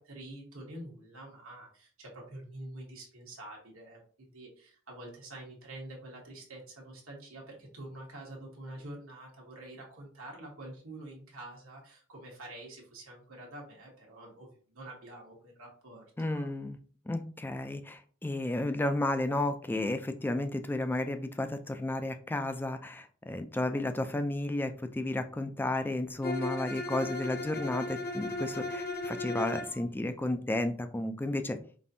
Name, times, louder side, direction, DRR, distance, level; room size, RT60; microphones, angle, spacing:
voice 1, 0.0-16.0 16.3-16.5, right 1 dB, 85° right, -2 dB, 1.2 m, -47 dB
voice 2, 16.2-16.8 17.1-31.6, left 1 dB, 10° left, 8 dB, 0.3 m, -32 dB
Bowed string instrument, 26.2-29.8, left 2 dB, 50° left, 0.8 m, -36 dB
5.2 x 2.6 x 2.6 m, 0.43 s
head